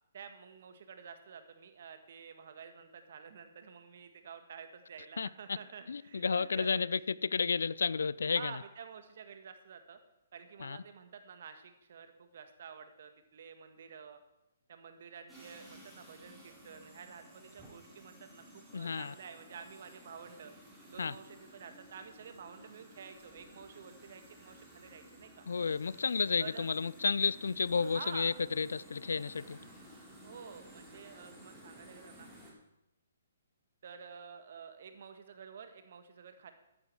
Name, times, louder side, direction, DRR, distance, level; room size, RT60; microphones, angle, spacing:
voice 1, 0.1-6.9 8.3-10.0 10.3-14.2 14.7-20.5 20.9-25.4 26.4-26.7 27.8-28.4 30.2-32.3 33.8-36.5, right 6 dB, 55° right, 1.7 m, -50 dB
voice 2, 5.9-8.6 10.6-10.8 18.7-19.1 21.0-21.2 25.5-29.6, left 5 dB, 75° left, 0.4 m, -32 dB
sound 1, 15.3-32.5, equal, 5° right, 4.0 m, -55 dB
14.0 x 9.8 x 4.7 m
hypercardioid pair, 135°, 0 cm